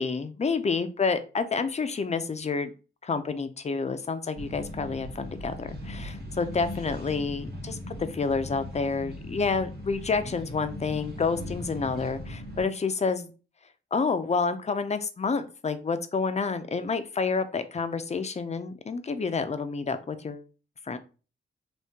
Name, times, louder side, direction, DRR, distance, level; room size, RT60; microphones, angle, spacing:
voice 1, 0.0-2.7 3.0-13.3 13.9-20.4 20.9-21.0, left 4 dB, 35° left, 10 dB, 0.4 m, -29 dB
sound 1, 4.4-12.7, left 1 dB, 50° right, 1.3 m, -39 dB
3.5 x 2.7 x 2.7 m, 0.35 s
cardioid pair, 75°, 20 cm